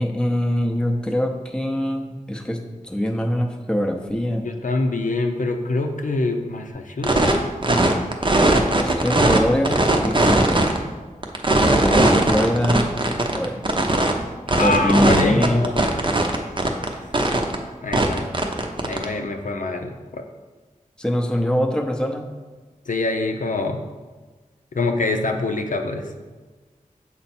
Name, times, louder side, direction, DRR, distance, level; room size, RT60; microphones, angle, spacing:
voice 1, 0.0-4.5 8.7-10.8 11.8-12.9 13.3-13.6 14.6-15.6 21.0-22.3, equal, 5° left, 3 dB, 0.7 m, -23 dB
voice 2, 4.4-7.4 14.6-16.2 17.8-18.3 18.8-20.3 22.9-23.8 24.7-26.1, left 2 dB, 65° left, 4 dB, 0.6 m, -25 dB
sound 1, 7.0-7.3 7.6-9.4 9.6-10.8 11.2-14.1 14.5-16.9 17.1-17.5 17.9-19.0, right 2 dB, 35° right, 0.7 m, -18 dB
7.0 x 4.3 x 4.3 m, 1.3 s
wide cardioid pair, 75°, 14 cm